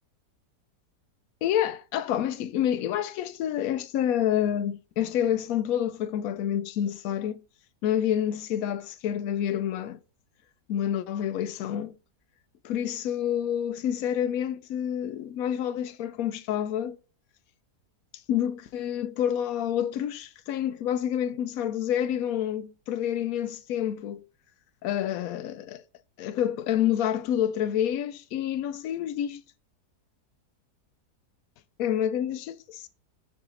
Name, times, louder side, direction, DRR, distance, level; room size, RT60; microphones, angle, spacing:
voice 1, 1.4-7.4 7.8-10.0 10.7-11.9 12.6-17.0 18.3-24.2 24.8-25.8 26.2-29.4 31.8-32.9, left 10 dB, 70° left, 0.9 m, -28 dB
9.0 x 4.4 x 3.9 m
omnidirectional pair, 1.8 m